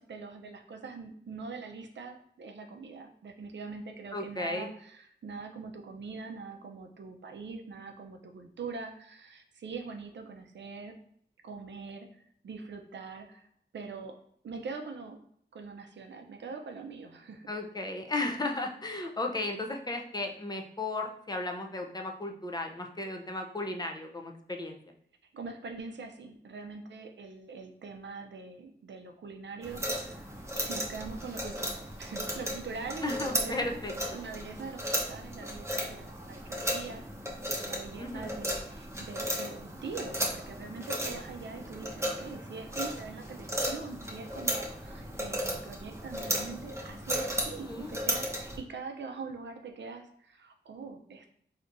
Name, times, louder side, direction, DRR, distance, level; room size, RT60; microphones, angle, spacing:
voice 1, 0.0-11.0 11.4-13.5 13.7-14.2 14.4-15.2 15.5-17.5 25.3-30.3 30.7-33.8 34.1-37.0 37.4-51.3, right 4 dB, 75° right, 4 dB, 0.5 m, -43 dB
voice 2, 4.1-4.7 17.5-24.8 33.0-34.2 38.0-38.5 47.7-47.9, left 2 dB, 20° left, 3 dB, 0.5 m, -35 dB
sound 1, 29.6-48.6, equal, 15° right, 0.8 m, -35 dB
3.3 x 2.8 x 2.5 m, 0.65 s
wide cardioid pair, 60°, 19 cm